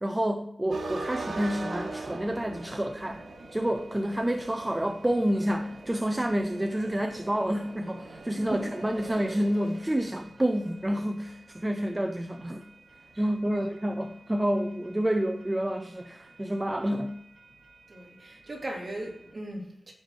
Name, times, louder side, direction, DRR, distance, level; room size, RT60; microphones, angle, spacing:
voice 1, 0.0-3.2 3.5-12.7 13.2-17.2, right 1 dB, 15° right, 5 dB, 0.5 m, -29 dB
sound 1, 0.7-19.3, right 2 dB, 70° right, 1.5 m, -44 dB
voice 2, 13.1-13.7 17.9-19.9, right 1 dB, 40° right, -4 dB, 3.3 m, -39 dB
14.5 x 5.8 x 3.3 m, 0.79 s
wide cardioid pair, 90°, 0 cm